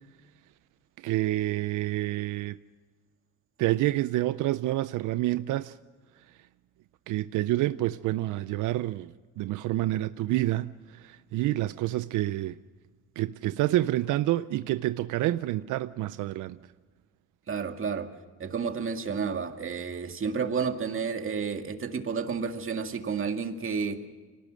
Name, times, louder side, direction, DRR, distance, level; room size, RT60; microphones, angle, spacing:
voice 1, 1.0-2.6 3.6-5.7 7.1-12.6 13.2-16.6, right 16 dB, 90° right, 0.6 m, -28 dB
voice 2, 17.5-18.1 18.4-24.0, right 5 dB, 45° right, 2.1 m, -31 dB
24.5 x 19.0 x 6.4 m
cardioid pair, 90°, 30 cm